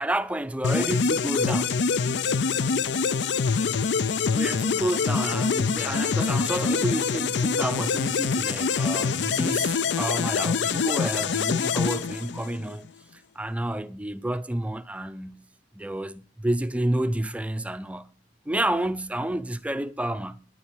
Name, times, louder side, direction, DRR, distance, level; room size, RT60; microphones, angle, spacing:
voice 1, 0.0-1.7 4.3-15.5 15.7-18.1 18.5-20.5, right 1 dB, 10° right, 0.4 m, -30 dB
sound 1, 0.6-12.7, left 5 dB, 85° left, 0.5 m, -25 dB
10.0 x 9.7 x 6.0 m
head